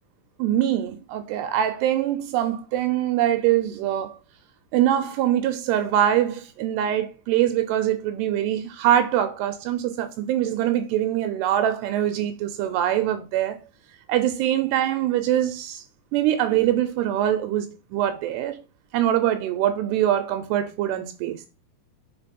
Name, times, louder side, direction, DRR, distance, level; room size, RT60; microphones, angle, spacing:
voice 1, 0.4-4.1 4.7-13.6 14.1-15.8 16.1-18.6 18.9-21.4, right 11 dB, 80° right, 2.7 m, -23 dB
5.2 x 4.9 x 5.2 m
omnidirectional pair, 5.0 m